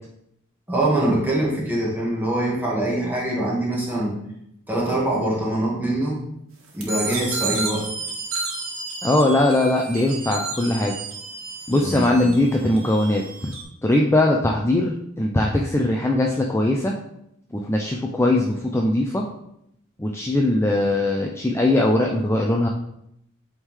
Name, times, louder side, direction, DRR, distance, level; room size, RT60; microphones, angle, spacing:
voice 1, 0.7-4.1 4.7-6.2 6.7-7.9 11.8-12.3, right 1 dB, 10° right, -5 dB, 1.7 m, -23 dB
sound 1, 6.8-13.6, right 3 dB, 85° right, 1.5 m, -32 dB
voice 2, 9.0-10.9 11.7-13.2 13.8-17.0 17.5-19.3 20.0-22.7, left 1 dB, 10° left, 0 dB, 0.4 m, -20 dB
8.2 x 3.7 x 3.2 m, 0.77 s
head